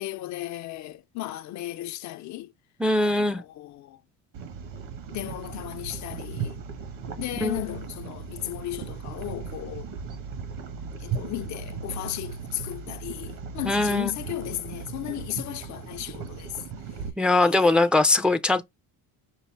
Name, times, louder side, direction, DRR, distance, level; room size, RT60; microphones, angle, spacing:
voice 1, 0.0-2.5 3.0-4.0 5.1-6.6 7.2-9.9 11.0-16.6 17.5-17.8, left 15 dB, 55° left, 0.5 m, -35 dB
voice 2, 2.8-3.4 7.4-7.6 13.6-14.1 17.2-18.6, left 2 dB, 5° right, 0.4 m, -21 dB
sound 1, 4.3-17.1, right 5 dB, 65° right, 1.5 m, -37 dB
5.5 x 2.0 x 4.6 m
cardioid pair, 110°, 35 cm